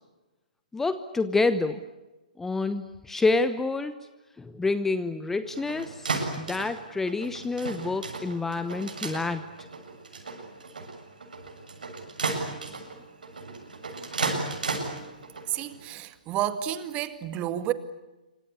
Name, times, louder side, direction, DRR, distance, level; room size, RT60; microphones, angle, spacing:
voice 1, 0.7-1.8 2.4-3.9 4.4-6.1 6.4-9.4, left 3 dB, 5° left, 11 dB, 0.9 m, -28 dB
sound 1, 5.4-15.8, right 3 dB, 75° right, 7.4 m, -35 dB
voice 2, 15.5-17.7, right 12 dB, 25° right, 10 dB, 2.0 m, -30 dB
27.5 x 25.0 x 8.3 m, 1.1 s
figure-of-eight pair, 130°, 5 cm